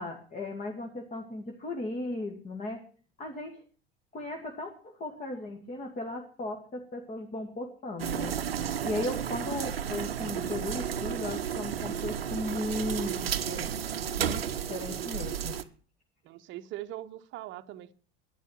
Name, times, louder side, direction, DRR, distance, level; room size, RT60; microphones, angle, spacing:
voice 1, 0.0-2.8 3.2-3.6 4.1-8.4 8.8-13.8 14.2-14.4 14.7-15.7, left 2 dB, 25° left, 2.3 m, -36 dB
sound 1, 8.0-15.6, right 9 dB, 75° right, 0.9 m, -32 dB
voice 2, 16.2-17.9, right 14 dB, 40° right, 1.0 m, -42 dB
12.0 x 10.5 x 7.3 m
figure-of-eight pair, 75°, 30 cm